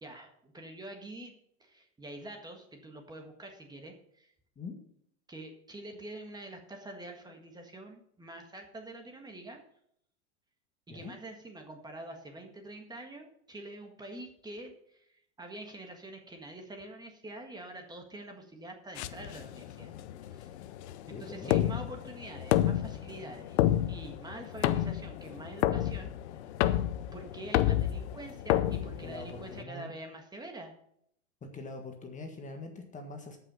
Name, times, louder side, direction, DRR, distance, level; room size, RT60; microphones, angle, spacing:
voice 1, 0.0-1.3 1.6-4.3 5.3-9.6 10.9-19.9 20.2-20.5 21.1-26.1 27.1-30.7, right 1 dB, 10° right, 3 dB, 1.6 m, -46 dB
sound 1, 19.0-29.6, left 13 dB, 70° left, 0.7 m, -30 dB
voice 2, 21.1-21.5 29.0-29.9 31.4-33.4, left 3 dB, 20° left, 4 dB, 1.6 m, -43 dB
13.5 x 6.0 x 5.6 m, 0.71 s
supercardioid pair, 120°, 34 cm